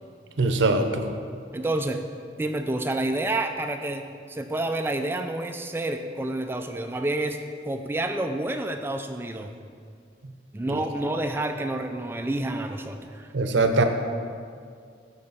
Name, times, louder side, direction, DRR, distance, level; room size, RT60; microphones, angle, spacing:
voice 1, 0.4-1.1 10.7-10.8 13.3-13.8, right 3 dB, 85° right, 7 dB, 0.7 m, -22 dB
voice 2, 1.5-2.0 2.4-7.4 7.7-9.6 10.5-13.3, right 2 dB, 10° right, 6 dB, 0.3 m, -29 dB
13.0 x 4.3 x 4.0 m, 2.2 s
head